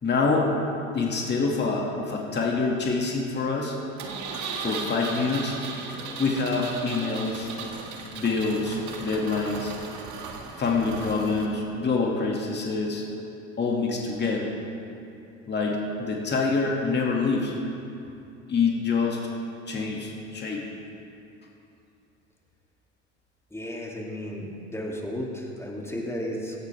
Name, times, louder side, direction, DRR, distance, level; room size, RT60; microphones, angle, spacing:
voice 1, 0.0-0.5 0.9-3.8 4.6-5.6 6.2-7.5 8.1-9.7 10.6-13.0 13.6-14.5 15.5-17.5 18.5-19.2 19.7-20.6, left 4 dB, 30° left, -1 dB, 2.3 m, -26 dB
Engine, 4.0-11.5, right 4 dB, 50° right, 2.0 m, -37 dB
voice 2, 23.5-26.6, equal, 5° left, -2 dB, 2.8 m, -33 dB
17.5 x 13.5 x 3.5 m, 2.7 s
hypercardioid pair, 75°, 37 cm